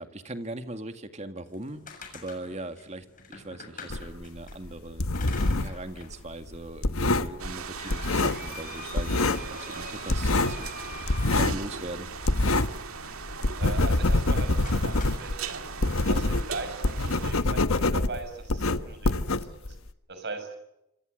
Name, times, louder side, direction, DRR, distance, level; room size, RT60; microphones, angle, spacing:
voice 1, 0.0-1.8 2.1-5.1 5.6-12.1, right 1 dB, 30° right, 8 dB, 2.1 m, -40 dB
sound 1, 1.5-4.6 5.1-6.1 6.5-6.6 7.2-11.9 14.0-14.3 14.6-15.6, left 5 dB, 40° left, 7.0 m, -45 dB
sound 2, 3.9-5.8 6.1-8.7 8.9-9.5 9.8-12.9 13.2-19.9, left 2 dB, 80° left, 1.2 m, -26 dB
sound 3, 7.4-17.3, right 6 dB, 85° right, 2.1 m, -39 dB
voice 2, 13.6-15.7 16.1-19.7 20.1-20.5, right 3 dB, 50° right, 8 dB, 6.5 m, -39 dB
27.5 x 26.5 x 6.6 m, 0.85 s
head